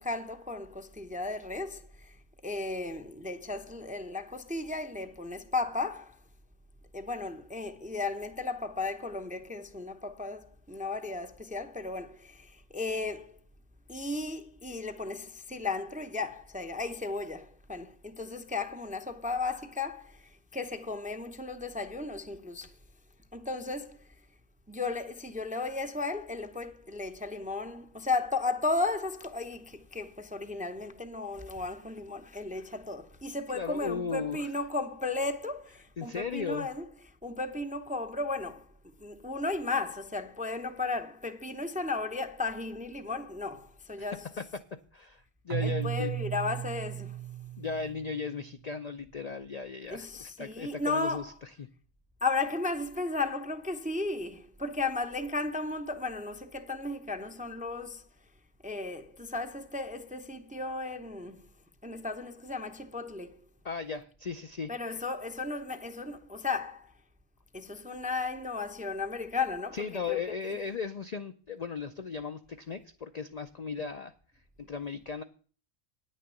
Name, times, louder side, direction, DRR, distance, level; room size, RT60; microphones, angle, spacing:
voice 1, 0.0-2.2 2.4-6.2 6.9-13.3 13.9-22.7 23.3-24.1 24.7-36.8 37.2-38.7 39.0-44.2 45.6-47.2 49.9-51.3 52.2-58.0 58.6-61.4 61.8-63.4 64.7-66.9 67.5-70.2, left 3 dB, 10° right, 0.4 m, -35 dB
voice 2, 33.5-34.5 36.0-36.7 44.4-44.5 44.9-46.1 47.6-51.3 51.6-51.7 63.6-64.7 69.7-74.1 74.6-75.2, left 5 dB, 60° left, 0.4 m, -36 dB
Keyboard (musical), 45.5-48.4, right 13 dB, 75° right, 1.1 m, -35 dB
9.7 x 6.5 x 7.7 m
omnidirectional pair, 1.4 m